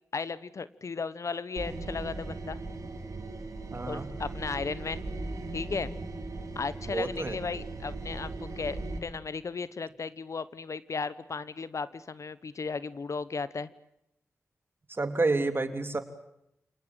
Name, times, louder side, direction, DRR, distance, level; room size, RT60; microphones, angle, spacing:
voice 1, 0.1-2.6 3.9-5.0 5.5-5.9 6.5-13.7, left 4 dB, 60° left, 16 dB, 1.1 m, -35 dB
sound 1, 1.6-9.0, right 2 dB, 65° right, 4.6 m, -38 dB
voice 2, 3.7-4.1 6.9-7.4 14.9-16.0, right 3 dB, 40° right, 9 dB, 3.2 m, -29 dB
29.0 x 19.0 x 9.1 m, 0.80 s
cardioid pair, 50°, 6 cm